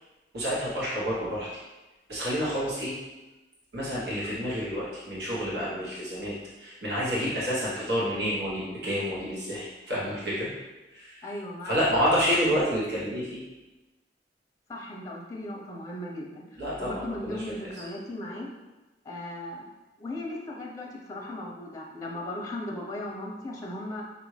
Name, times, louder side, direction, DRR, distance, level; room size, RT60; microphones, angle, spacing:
voice 1, 0.3-1.6 2.1-2.9 3.7-10.5 10.9-11.2 11.6-13.4 16.6-17.8, equal, 65° right, -8 dB, 1.2 m, -29 dB
voice 2, 11.2-12.0 14.7-18.5 19.0-19.7 20.0-24.0, left 1 dB, 20° left, -2 dB, 0.6 m, -37 dB
5.5 x 2.6 x 3.2 m, 1.1 s
head